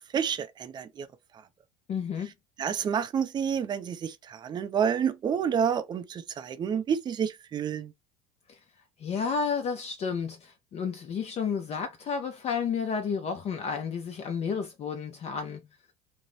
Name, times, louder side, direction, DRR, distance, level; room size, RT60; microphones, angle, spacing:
voice 1, 0.1-1.1 2.6-7.9, right 7 dB, 25° right, 0.4 m, -29 dB
voice 2, 1.9-2.3 8.5-8.6 9.0-15.7, left 6 dB, 40° left, 0.5 m, -31 dB
2.5 x 2.0 x 3.0 m
supercardioid pair, 100°, 17 cm